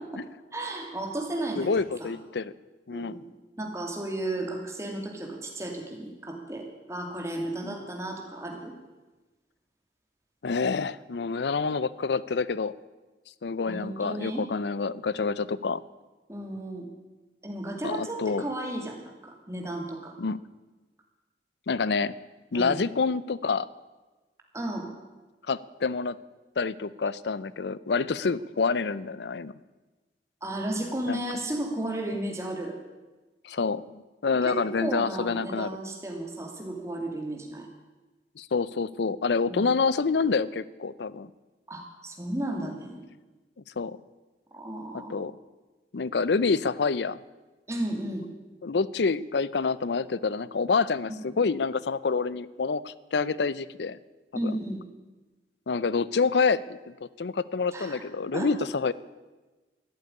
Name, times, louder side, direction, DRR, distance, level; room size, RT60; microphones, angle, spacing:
voice 1, 0.5-1.7 2.0-2.1 2.9-8.7 13.7-14.4 16.3-16.9 17.4-20.1 22.5-22.8 24.5-24.9 30.4-32.8 34.4-37.7 39.5-39.7 41.7-43.0 44.5-45.2 47.7-48.3 54.3-54.8 57.7-58.0 58.3-58.5, right 1 dB, 15° right, 2 dB, 2.4 m, -34 dB
voice 2, 1.6-2.5 2.9-3.2 7.6-7.7 10.4-12.7 13.4-15.8 17.8-18.5 20.2-20.4 21.7-22.2 22.5-23.7 25.5-26.2 26.6-29.5 31.1-31.2 33.4-35.7 38.4-41.3 43.8-44.0 45.1-45.3 45.9-47.2 48.6-54.0 54.4-54.5 55.7-58.9, left 4 dB, 75° left, 19 dB, 0.5 m, -27 dB
14.0 x 8.0 x 10.0 m, 1.2 s
head